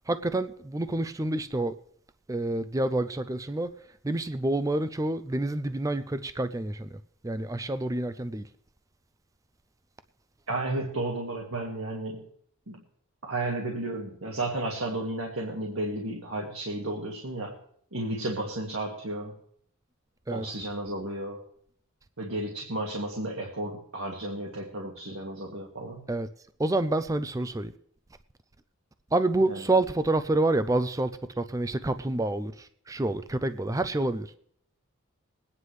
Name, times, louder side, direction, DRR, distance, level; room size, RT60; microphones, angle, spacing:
voice 1, 0.1-1.7 2.3-3.7 4.0-7.0 7.2-8.5 20.3-20.5 26.1-26.3 26.6-27.7 29.1-34.3, right 2 dB, 15° right, 11 dB, 0.4 m, -28 dB
voice 2, 10.5-12.3 12.7-12.8 13.2-17.6 17.9-19.4 20.3-21.4 22.2-26.1 29.5-29.6, right 2 dB, 75° right, 0 dB, 1.9 m, -33 dB
22.0 x 9.6 x 3.2 m, 0.64 s
head